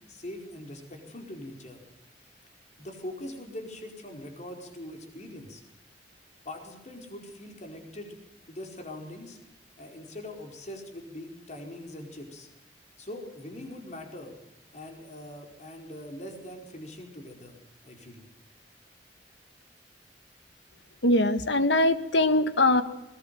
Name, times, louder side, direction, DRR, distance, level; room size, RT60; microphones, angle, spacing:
voice 1, 0.1-1.8 2.8-5.6 6.4-8.2 8.4-9.4 9.8-12.5 13.0-14.3 14.7-17.6 17.8-18.2, left 1 dB, 40° left, 3 dB, 4.8 m, -42 dB
voice 2, 21.0-22.8, left 2 dB, 80° left, 11 dB, 1.8 m, -22 dB
21.5 x 21.0 x 7.7 m, 0.93 s
head